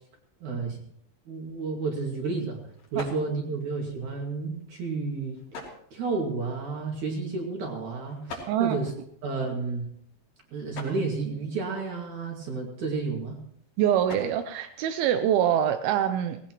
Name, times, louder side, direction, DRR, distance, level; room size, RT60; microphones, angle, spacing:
voice 1, 0.4-0.8 1.3-2.6 2.9-5.4 5.9-8.9 9.2-9.9 10.5-13.4, right 4 dB, 50° right, 0 dB, 3.1 m, -31 dB
sound 1, 1.3-15.7, left 2 dB, 55° left, 4.8 m, -49 dB
voice 2, 8.5-8.8 13.8-16.4, right 10 dB, 80° right, 8 dB, 2.2 m, -24 dB
18.5 x 17.5 x 3.1 m, 0.67 s
omnidirectional pair, 5.1 m